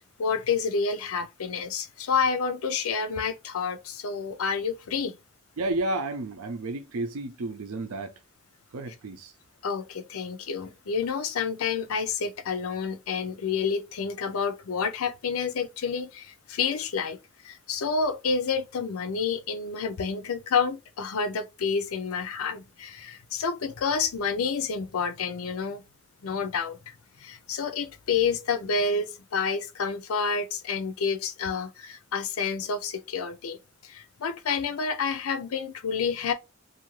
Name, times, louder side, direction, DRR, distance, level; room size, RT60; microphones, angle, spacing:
voice 1, 0.2-5.2 9.6-17.2 17.4-25.8 26.2-33.6 33.8-36.3, left 5 dB, 80° left, 0.5 m, -29 dB
voice 2, 5.6-8.1 8.7-9.3, right 2 dB, 85° right, 0.5 m, -31 dB
2.6 x 2.5 x 3.0 m
head